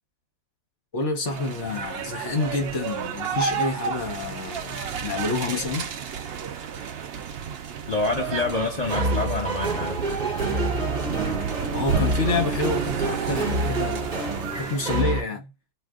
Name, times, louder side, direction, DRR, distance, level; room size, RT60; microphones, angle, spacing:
voice 1, 0.9-5.9 11.7-15.5, left 3 dB, 50° left, 1.2 m, -28 dB
sound 1, 1.3-15.0, right 7 dB, 65° right, 0.6 m, -31 dB
voice 2, 7.9-10.0, left 3 dB, 80° left, 0.3 m, -27 dB
sound 2, 8.0-15.2, right 2 dB, 30° right, 1.0 m, -28 dB
2.7 x 2.5 x 3.6 m
omnidirectional pair, 1.7 m